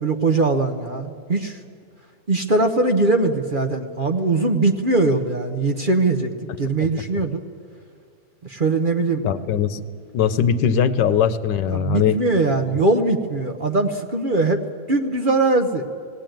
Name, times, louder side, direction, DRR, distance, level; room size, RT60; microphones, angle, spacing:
voice 1, 0.0-1.6 2.3-6.3 6.6-7.4 8.4-9.6 11.7-14.6 14.9-15.8, right 2 dB, 35° right, 4 dB, 1.0 m, -21 dB
voice 2, 9.2-9.8 10.1-12.2, left 8 dB, 90° left, 12 dB, 1.5 m, -20 dB
18.5 x 18.0 x 9.1 m, 2.2 s
omnidirectional pair, 1.8 m